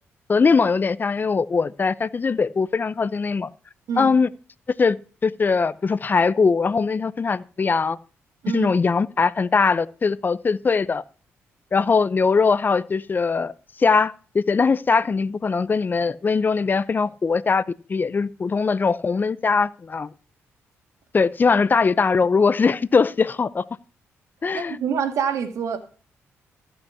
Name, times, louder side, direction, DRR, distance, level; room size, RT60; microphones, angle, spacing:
voice 1, 0.3-3.5 4.0-4.3 4.8-5.0 5.2-8.0 8.5-11.0 11.7-13.5 13.8-17.6 17.9-20.1 21.1-23.6 24.4-24.8, left 4 dB, 35° left, 0.6 m, -21 dB
voice 2, 24.5-25.8, right 7 dB, 75° right, 1.8 m, -26 dB
14.5 x 5.5 x 5.6 m
cardioid pair, 70°, 5 cm